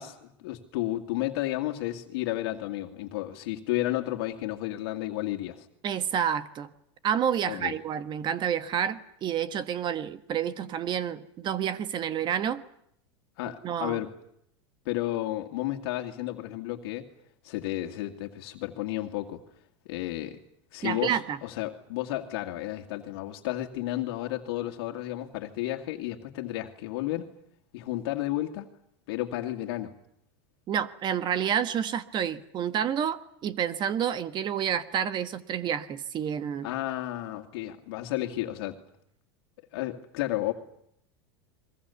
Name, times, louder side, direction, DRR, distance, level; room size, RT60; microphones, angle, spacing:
voice 1, 0.0-5.7 7.4-7.7 13.4-14.1 14.9-17.1 17.4-19.4 19.9-20.4 20.7-27.3 27.7-28.7 29.1-29.9 36.6-38.8 39.7-40.5, left 15 dB, 70° left, 2 dB, 2.1 m, -32 dB
voice 2, 5.8-6.7 7.0-12.6 13.6-14.0 20.8-21.4 30.7-36.7, right 9 dB, 35° right, 13 dB, 1.3 m, -29 dB
30.0 x 22.5 x 7.0 m, 0.72 s
supercardioid pair, 125°, 13 cm